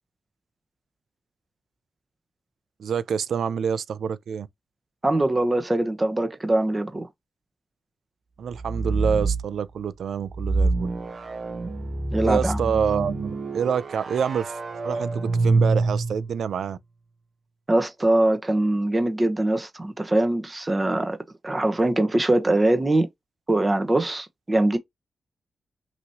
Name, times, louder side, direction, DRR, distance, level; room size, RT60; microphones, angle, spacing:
voice 1, 2.8-4.5 8.4-10.9 12.2-16.8, right 7 dB, 85° right, 0.4 m, -27 dB
voice 2, 5.0-7.1 12.1-12.6 17.7-21.2 21.4-23.1 23.5-24.8, right 1 dB, 20° right, 1.0 m, -22 dB
sound 1, 8.5-9.5 10.3-16.3, right 3 dB, 50° right, 1.1 m, -26 dB
5.9 x 3.0 x 2.8 m
wide cardioid pair, 115°, 0 cm